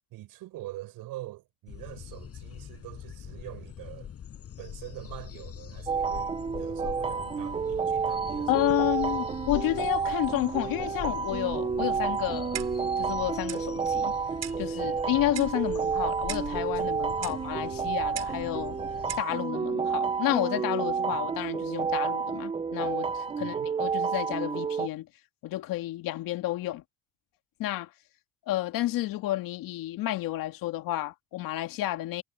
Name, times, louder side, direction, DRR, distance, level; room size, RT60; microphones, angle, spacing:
voice 1, 0.1-4.1 4.6-6.3 6.6-9.4 17.2-17.4 23.4-23.7, right 16 dB, 85° right, 7.3 m, -44 dB
sound 1, 1.7-19.2, left 9 dB, 45° left, 5.2 m, -43 dB
sound 2, 5.9-24.9, right 6 dB, 15° right, 0.5 m, -30 dB
voice 2, 8.5-12.6 13.0-14.1 14.6-18.8 19.2-25.1 25.4-26.8 27.6-27.9 28.5-32.2, left 15 dB, 80° left, 2.1 m, -30 dB
Clock, 12.5-12.9 13.5-13.7 14.4-14.7 15.3-15.6 16.3-16.6 17.2-17.4 18.1-18.4 19.1-19.3, right 10 dB, 50° right, 3.7 m, -38 dB
cardioid pair, 155°, 34 cm